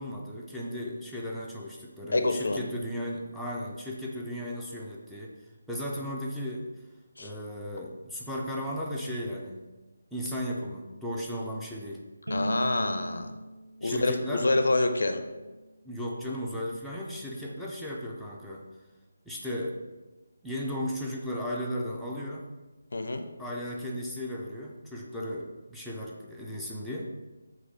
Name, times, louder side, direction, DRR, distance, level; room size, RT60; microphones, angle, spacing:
voice 1, 0.0-5.3 5.7-6.6 7.2-9.6 10.1-12.1 13.8-14.5 15.8-18.7 19.3-20.0 20.4-22.5 23.4-27.1, equal, ahead, -5 dB, 0.4 m, -35 dB
voice 2, 2.1-2.6 7.2-7.3 12.3-13.3 13.8-15.2 22.9-23.2, left 2 dB, 70° left, 7 dB, 0.4 m, -27 dB
Bowed string instrument, 12.3-15.5, right 1 dB, 85° right, 0.5 m, -38 dB
4.0 x 2.4 x 4.0 m, 1.2 s
figure-of-eight pair, 155°, 0 cm